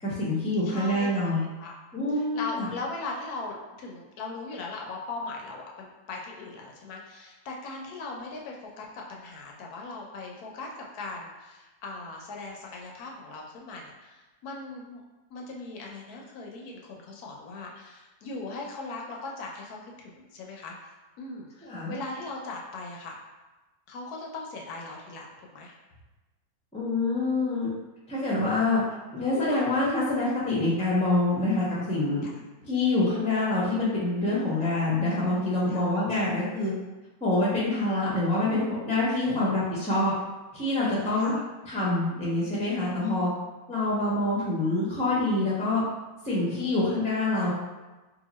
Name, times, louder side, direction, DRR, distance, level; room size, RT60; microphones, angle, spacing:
voice 1, 0.0-1.4 1.9-2.7 21.6-22.0 26.7-27.7 28.1-28.8 29.1-32.2 32.6-36.7 37.2-40.1 40.5-41.3 41.7-43.3 43.7-45.8 46.2-47.5, left 2 dB, 5° left, -7 dB, 0.5 m, -26 dB
voice 2, 0.7-1.8 2.1-15.0 15.3-23.2 23.9-25.8 28.6-28.9 32.2-32.3 35.7-35.8 39.3-39.5 41.1-41.4 46.3-46.8, left 3 dB, 75° left, -1 dB, 1.1 m, -39 dB
2.9 x 2.5 x 4.0 m, 1.1 s
omnidirectional pair, 1.7 m